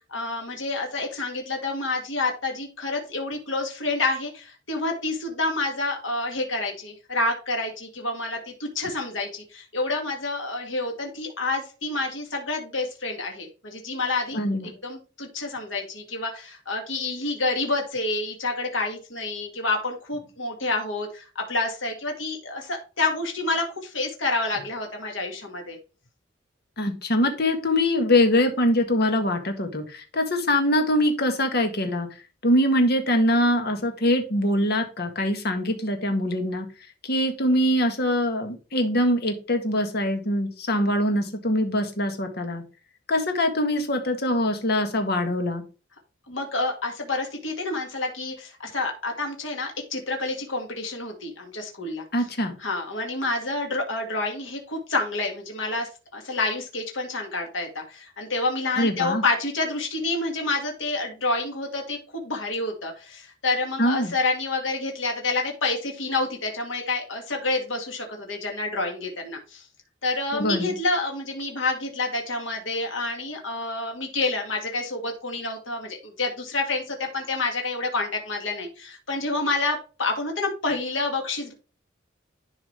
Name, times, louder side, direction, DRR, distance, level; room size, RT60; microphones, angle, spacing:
voice 1, 0.1-25.8 46.3-52.0 52.6-69.7 70.0-81.5, left 3 dB, 85° left, 2 dB, 2.0 m, -28 dB
voice 2, 14.3-14.7 26.8-32.1 32.4-36.7 37.0-42.6 43.1-45.6 52.1-52.6 58.8-59.2 63.8-64.1 70.3-70.7, left 1 dB, 55° left, 5 dB, 1.9 m, -23 dB
11.5 x 4.9 x 3.3 m, 0.33 s
head